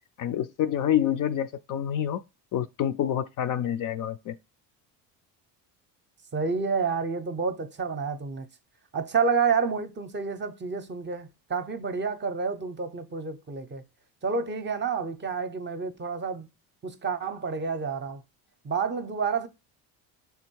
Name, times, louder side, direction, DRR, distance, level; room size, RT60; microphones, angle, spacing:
voice 1, 0.2-2.2 2.5-4.3, left 10 dB, 50° left, 0.5 m, -27 dB
voice 2, 6.3-8.5 8.9-13.8 14.2-16.5 16.8-18.2 18.6-19.5, right 5 dB, 25° right, 0.7 m, -29 dB
6.1 x 3.5 x 4.5 m
supercardioid pair, 95°, 44 cm